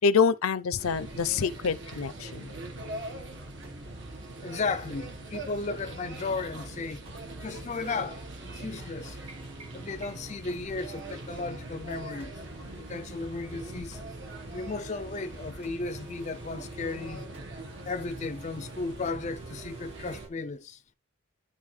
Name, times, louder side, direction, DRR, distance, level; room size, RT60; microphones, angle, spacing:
voice 1, 0.0-2.5, left 5 dB, 90° left, 0.5 m, -26 dB
sound 1, 0.7-20.3, right 2 dB, 30° right, 1.3 m, -50 dB
sound 2, 0.8-20.3, right 2 dB, 55° right, 1.5 m, -42 dB
voice 2, 4.4-7.1 7.4-9.2 9.7-14.0 14.5-17.3 17.8-20.8, left 3 dB, 35° left, 0.4 m, -35 dB
sound 3, 9.3-10.5, right 3 dB, 75° right, 3.7 m, -52 dB
11.5 x 3.9 x 3.2 m
head